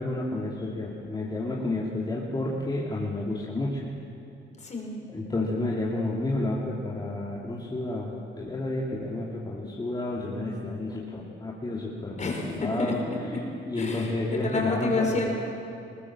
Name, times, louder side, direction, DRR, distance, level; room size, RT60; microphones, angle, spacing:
voice 1, 0.0-3.9 5.1-13.0 13.7-15.1, left 2 dB, 20° left, -4 dB, 2.9 m, -31 dB
voice 2, 4.6-5.0 12.2-13.2 13.8-15.3, left 3 dB, 35° left, 0 dB, 5.2 m, -29 dB
21.0 x 18.5 x 7.5 m, 2.7 s
cardioid pair, 90°, 20 cm